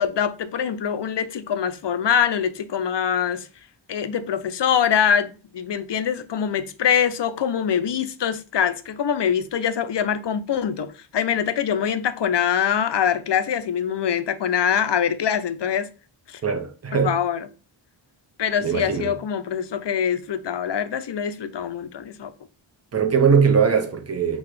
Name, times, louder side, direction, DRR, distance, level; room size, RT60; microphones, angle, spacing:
voice 1, 0.0-3.5 3.9-15.9 16.3-16.4 16.9-17.5 18.4-22.3, left 8 dB, 60° left, 0.5 m, -24 dB
voice 2, 16.4-17.1 18.6-19.1 22.9-24.4, right 6 dB, 30° right, 0.7 m, -20 dB
5.8 x 2.3 x 3.2 m
wide cardioid pair, 50°, 49 cm